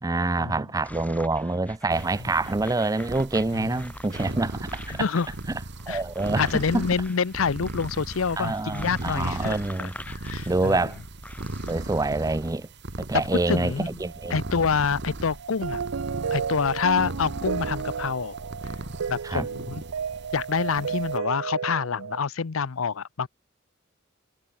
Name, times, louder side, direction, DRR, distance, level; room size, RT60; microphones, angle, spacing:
voice 1, 0.0-5.1 5.9-6.9 8.4-9.9 10.5-11.0 11.7-12.7 13.0-14.4 19.2-19.5, right 2 dB, 15° right, 0.5 m, -26 dB
sound 1, 0.8-11.7, left 1 dB, 10° left, 3.6 m, -45 dB
sound 2, 1.9-21.2, right 2 dB, 60° right, 1.9 m, -38 dB
voice 2, 4.9-5.3 5.9-6.0 6.4-10.8 13.5-14.0 14.3-15.8 16.3-18.4 19.1-19.8 20.3-23.3, left 5 dB, 75° left, 0.7 m, -27 dB
sound 3, 14.0-22.2, right 6 dB, 80° right, 0.5 m, -33 dB
head